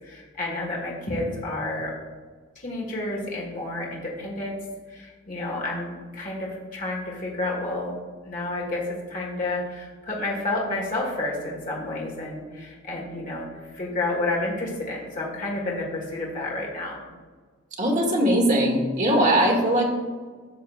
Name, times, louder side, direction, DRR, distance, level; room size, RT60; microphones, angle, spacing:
voice 1, 0.0-1.9 2.6-4.6 4.9-8.0 8.2-17.0, left 2 dB, 40° left, -3 dB, 1.5 m, -30 dB
voice 2, 17.8-19.9, right 1 dB, 35° right, 1 dB, 1.3 m, -20 dB
11.0 x 6.6 x 2.4 m, 1.5 s
head